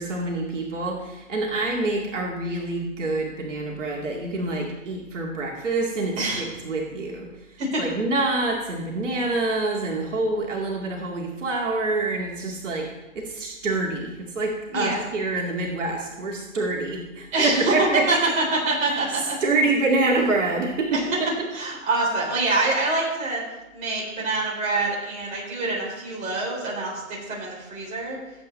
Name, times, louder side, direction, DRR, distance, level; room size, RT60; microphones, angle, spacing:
voice 1, 0.0-7.3 7.8-12.9 13.2-18.2 19.1-21.3, right 2 dB, 60° right, -1 dB, 2.3 m, -26 dB
voice 2, 6.2-6.5 7.6-7.8 14.7-15.0 17.3-18.2 18.7-19.2 20.9-21.0 21.5-23.4 23.7-28.2, right 2 dB, 15° right, -4 dB, 3.8 m, -25 dB
17.5 x 8.1 x 3.2 m, 1.0 s
hypercardioid pair, 140°, 41 cm